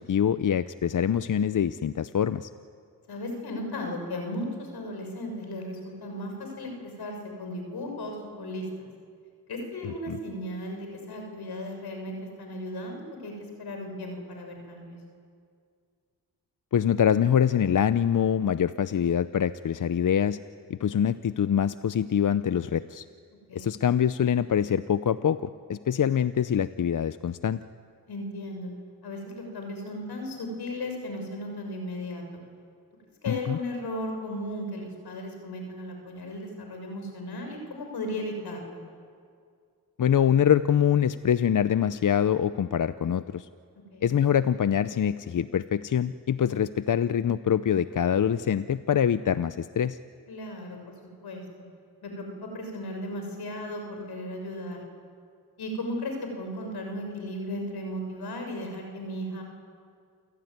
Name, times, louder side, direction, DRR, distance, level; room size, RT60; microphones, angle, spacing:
voice 1, 0.0-2.5 9.8-10.2 16.7-20.4 20.7-23.1 23.5-27.6 33.3-33.6 40.0-43.5 44.0-50.0, left 9 dB, 55° left, 14 dB, 0.7 m, -24 dB
voice 2, 3.1-8.9 9.5-15.0 23.5-23.7 28.1-28.7 29.0-32.4 33.2-38.8 43.9-44.1 50.3-50.9 51.2-51.4 52.0-54.8 55.6-59.4, left 1 dB, 85° left, 3 dB, 6.5 m, -36 dB
28.5 x 16.5 x 9.5 m, 2.2 s
cardioid pair, 55°, 38 cm